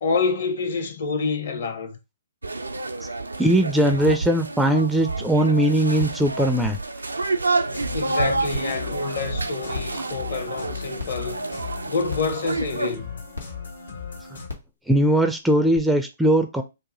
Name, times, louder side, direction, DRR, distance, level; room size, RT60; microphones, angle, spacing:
voice 1, 0.0-2.0 7.9-11.4 11.9-13.2, left 4 dB, 60° left, 0.8 m, -27 dB
sound 1, 2.4-12.9, right 3 dB, 80° right, 0.4 m, -29 dB
voice 2, 3.4-6.8 14.9-16.6, right 1 dB, 5° right, 0.4 m, -20 dB
sound 2, 7.7-14.5, left 5 dB, 75° left, 1.4 m, -37 dB
sound 3, 8.5-8.6 9.1-9.2 9.7-10.0 11.0-11.1 12.1-12.4 13.3-13.4 14.4-14.7 15.7-15.8, left 4 dB, 90° left, 1.0 m, -35 dB
2.7 x 2.6 x 3.7 m
figure-of-eight pair, 120°, 0 cm